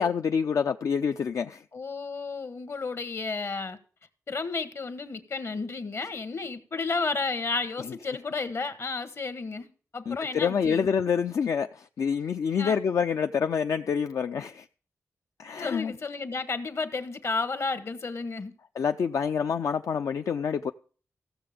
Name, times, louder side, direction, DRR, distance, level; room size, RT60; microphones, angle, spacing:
voice 1, 0.0-1.6 10.1-14.6 15.4-15.9 18.8-20.7, left 6 dB, 75° left, 0.4 m, -27 dB
voice 2, 1.7-3.8 4.3-10.9 12.6-12.8 15.6-18.5, left 4 dB, 55° left, 1.2 m, -32 dB
15.0 x 6.9 x 5.0 m
wide cardioid pair, 85°, 6 cm